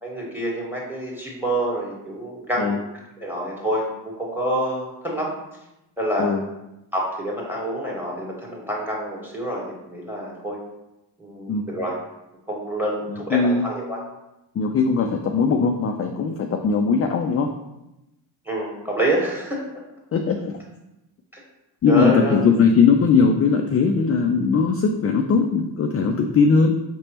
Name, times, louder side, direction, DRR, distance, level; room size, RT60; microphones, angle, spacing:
voice 1, 0.0-2.7 3.2-5.3 6.0-6.3 6.9-10.6 11.2-11.9 12.5-14.0 18.5-19.6 21.3-21.4 21.9-22.4, right 1 dB, 5° right, -3 dB, 1.6 m, -27 dB
voice 2, 13.1-13.6 14.5-17.5 20.1-20.5 21.8-26.7, left 5 dB, 35° left, 4 dB, 0.4 m, -19 dB
5.2 x 3.3 x 2.9 m, 0.93 s
supercardioid pair, 60°, 47 cm